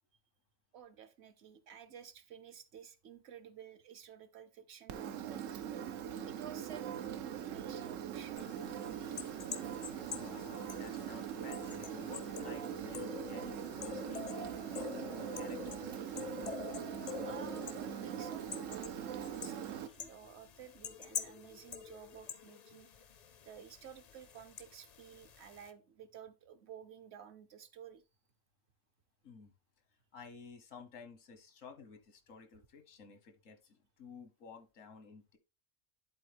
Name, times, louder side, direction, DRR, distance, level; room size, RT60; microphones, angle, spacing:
voice 1, 0.7-5.4 6.2-8.5 8.9-9.3 17.2-22.9 23.4-28.0, right 8 dB, 60° right, 1.0 m, -53 dB
Engine, 4.9-19.9, right 9 dB, 90° right, 1.1 m, -42 dB
sound 1, 8.4-25.7, left 7 dB, 55° left, 0.4 m, -47 dB
voice 2, 10.1-16.1 29.2-29.5 30.1-35.4, left 5 dB, 90° left, 1.5 m, -53 dB
10.5 x 4.2 x 3.3 m
omnidirectional pair, 1.3 m